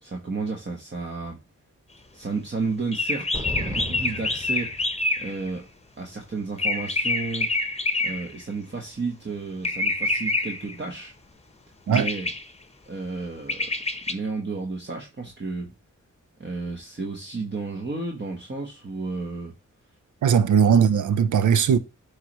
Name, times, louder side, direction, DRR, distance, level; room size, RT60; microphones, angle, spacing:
voice 1, 0.0-1.4 2.1-4.8 5.2-5.7 6.0-7.5 8.0-11.1 11.9-12.3 12.9-13.7 14.1-15.7 16.4-19.5 20.7-20.8, right 4 dB, 35° right, 1.2 m, -32 dB
sound 1, 2.9-5.5 6.6-8.4 9.6-10.7 11.9-12.4 13.5-14.1, left 2 dB, 20° left, 0.9 m, -26 dB
sound 2, 3.3-5.3, equal, 10° right, 1.7 m, -34 dB
voice 2, 20.2-21.8, right 7 dB, 70° right, 0.6 m, -19 dB
9.5 x 3.3 x 3.0 m
cardioid pair, 55°, 31 cm